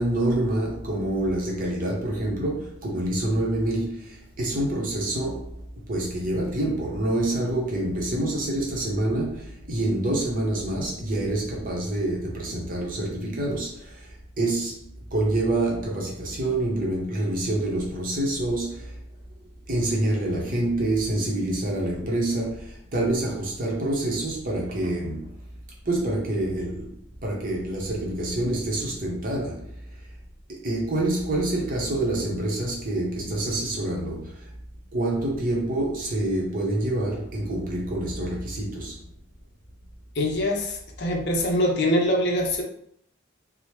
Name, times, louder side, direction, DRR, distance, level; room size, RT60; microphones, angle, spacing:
voice 1, 0.0-19.0 19.7-25.4 25.8-29.8 30.5-34.5 34.9-39.0, right 1 dB, 40° right, 0.7 m, -27 dB
voice 2, 40.2-42.6, left 1 dB, 55° left, 0.5 m, -24 dB
3.0 x 2.0 x 3.1 m
head